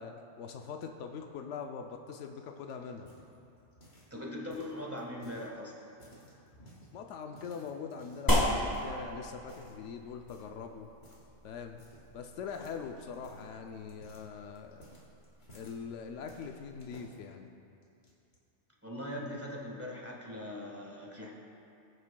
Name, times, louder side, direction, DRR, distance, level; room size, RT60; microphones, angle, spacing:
voice 1, 0.0-3.1 6.9-10.9 11.4-11.8 12.1-14.9 15.5-17.5, left 6 dB, 90° left, 4 dB, 0.9 m, -42 dB
sound 1, 2.2-4.2 4.5-5.5 5.9-6.9 7.3-8.3 8.7-9.0 9.4-9.8 10.3-10.6 11.0-11.3 11.5-12.2 12.5-15.8 16.3-17.2 17.8-18.4, equal, 60° left, 1.6 m, -57 dB
voice 2, 4.1-5.8 18.8-21.3, left 1 dB, 10° right, -2 dB, 1.4 m, -40 dB
sound 2, 8.3-17.0, equal, 20° left, 1.0 m, -36 dB
19.5 x 6.6 x 2.3 m, 2.6 s
omnidirectional pair, 1.2 m